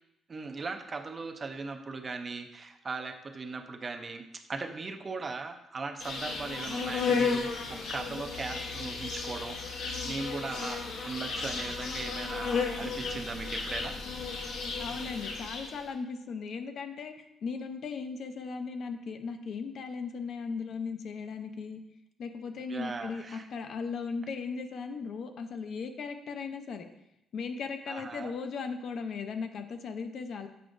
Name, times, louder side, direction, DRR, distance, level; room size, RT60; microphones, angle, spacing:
voice 1, 0.3-14.0 22.7-23.5 27.9-28.3, right 4 dB, 35° right, 6 dB, 0.5 m, -39 dB
Insect, 6.0-15.8, left 4 dB, 80° left, 0.9 m, -34 dB
voice 2, 14.8-21.8 22.2-26.9 27.3-30.5, left 5 dB, 65° left, 7 dB, 0.6 m, -37 dB
7.9 x 4.9 x 2.5 m, 0.85 s
cardioid pair, 90°, 0 cm